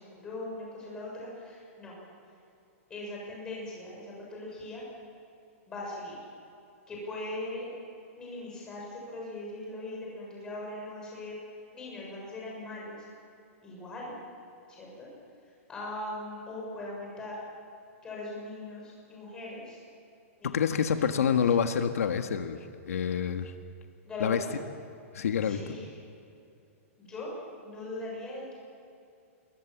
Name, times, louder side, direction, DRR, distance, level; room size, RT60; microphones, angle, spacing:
voice 1, 0.0-2.0 2.9-4.8 5.7-6.2 6.9-7.7 8.1-11.4 11.7-13.0 13.6-14.1 14.7-15.1 15.7-17.4 18.0-19.8 20.4-20.7 21.0-21.3 24.0-24.5 25.4-25.9 27.0-27.3 27.6-28.5, left 2 dB, 10° left, -3 dB, 6.6 m, -40 dB
voice 2, 20.4-22.6 22.9-23.5 24.2-24.4 25.1-25.6, left 7 dB, 85° left, 7 dB, 1.7 m, -27 dB
26.0 x 22.5 x 7.3 m, 2.6 s
hypercardioid pair, 175°, 8 cm